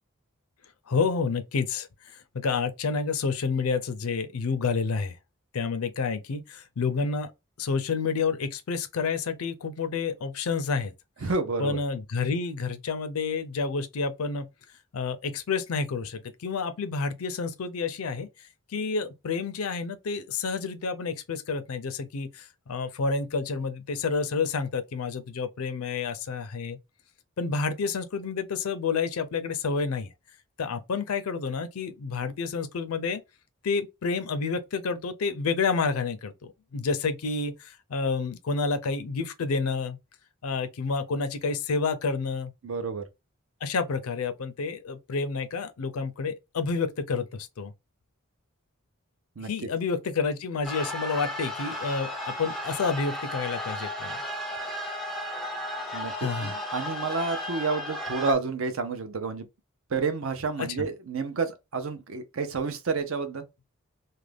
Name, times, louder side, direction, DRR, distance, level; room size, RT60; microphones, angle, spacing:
voice 1, 0.9-5.2 5.5-7.3 7.6-10.9 11.6-14.5 14.9-18.3 18.7-26.8 27.4-30.1 30.6-33.2 33.6-40.0 40.4-42.5 43.6-47.7 49.4-54.2 56.2-56.5 60.6-60.7, left 4 dB, 85° left, 0.5 m, -29 dB
voice 2, 11.2-11.8 42.6-43.0 49.4-49.7 55.9-59.5 59.9-63.5, right 4 dB, 65° right, 0.6 m, -30 dB
sound 1, 50.6-58.3, left 1 dB, ahead, 0.5 m, -34 dB
2.4 x 2.2 x 3.3 m
head